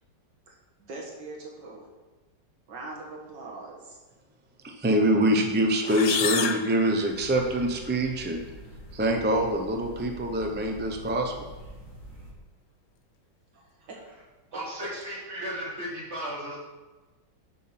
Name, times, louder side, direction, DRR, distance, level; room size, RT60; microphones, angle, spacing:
voice 1, 0.5-1.9 2.7-4.0 13.5-14.2 15.4-15.6, right 2 dB, 75° right, -2 dB, 2.3 m, -42 dB
voice 2, 4.6-8.5 8.9-11.3, right 1 dB, 15° right, 2 dB, 0.3 m, -25 dB
sound 1, 5.8-7.7, left 8 dB, 80° left, 0.7 m, -31 dB
sound 2, 7.0-12.3, right 1 dB, 55° left, 3.4 m, -45 dB
voice 3, 14.5-16.6, equal, 35° right, -8 dB, 3.7 m, -35 dB
8.2 x 6.0 x 5.9 m, 1.2 s
omnidirectional pair, 1.9 m